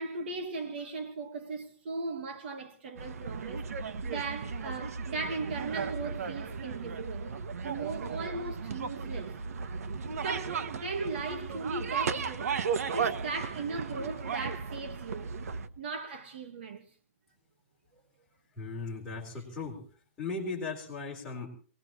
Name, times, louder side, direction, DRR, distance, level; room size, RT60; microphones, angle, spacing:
voice 1, 0.0-3.7 4.0-7.4 7.6-9.4 10.2-12.6 12.9-15.4 15.8-16.8, right 4 dB, 50° right, 1.7 m, -38 dB
sound 1, 3.0-15.7, right 5 dB, 90° right, 1.1 m, -35 dB
voice 2, 18.5-19.8 20.2-21.5, left 3 dB, 5° left, 4.0 m, -37 dB
24.0 x 20.0 x 3.1 m
hypercardioid pair, 180°, 8 cm